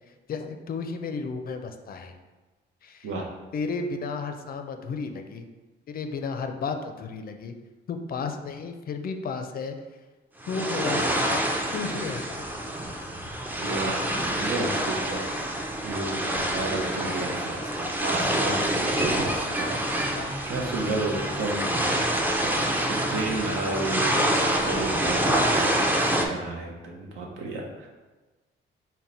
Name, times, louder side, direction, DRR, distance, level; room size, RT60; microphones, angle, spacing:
voice 1, 0.3-2.1 2.8-3.1 3.5-5.5 5.9-7.5 7.9-9.8 10.5-11.4 11.7-12.4 20.0-20.3, left 4 dB, 50° left, 6 dB, 0.4 m, -33 dB
sound 1, 10.4-26.3, right 1 dB, 10° right, 0.4 m, -26 dB
voice 2, 13.6-14.0 14.4-22.0 22.4-27.9, right 2 dB, 80° right, 0 dB, 0.8 m, -33 dB
3.7 x 2.2 x 4.2 m, 1.2 s
cardioid pair, 90°, 20 cm